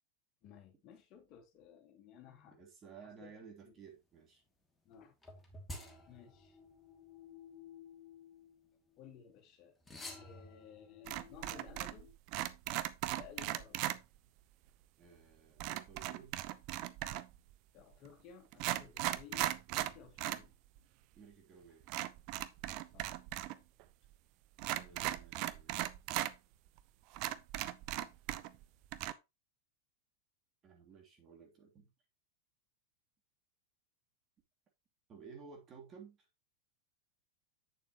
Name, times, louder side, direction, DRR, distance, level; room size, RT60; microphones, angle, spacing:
voice 1, 0.4-2.6 3.2-3.3 3.6-3.7 4.8-5.1 6.1-6.6 9.0-9.7 10.2-12.1 13.2-13.8 17.7-20.5 22.9-23.1, left 8 dB, 40° left, 2.5 m, -56 dB
voice 2, 2.5-4.4 15.0-16.4 21.1-21.8 24.7-25.8 30.6-31.9 35.1-36.3, right 6 dB, 30° right, 3.0 m, -55 dB
sound 1, 5.2-9.0 9.8-12.1, left 2 dB, 10° left, 2.4 m, -52 dB
sound 2, 11.1-12.0 12.3-14.0 15.6-17.4 18.0-18.1 18.5-20.4 20.8-20.9 21.9-23.5 23.8-23.9 24.6-26.3 26.8-26.9 27.1-28.6 28.9-29.1, right 15 dB, 45° right, 0.7 m, -38 dB
8.5 x 7.0 x 3.0 m
figure-of-eight pair, 90°, 0 cm